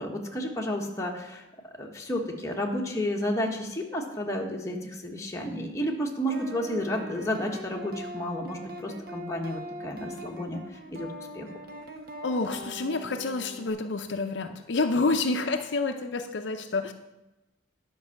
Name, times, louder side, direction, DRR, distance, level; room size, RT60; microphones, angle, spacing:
voice 1, 0.0-1.5 1.8-10.6 10.9-11.1 11.3-11.5, equal, 15° left, 0 dB, 1.2 m, -31 dB
sound 1, 6.3-13.7, equal, 50° right, 1.3 m, -42 dB
voice 2, 12.2-16.9, left 3 dB, 65° left, 6 dB, 0.6 m, -28 dB
10.5 x 5.4 x 7.1 m, 0.98 s
head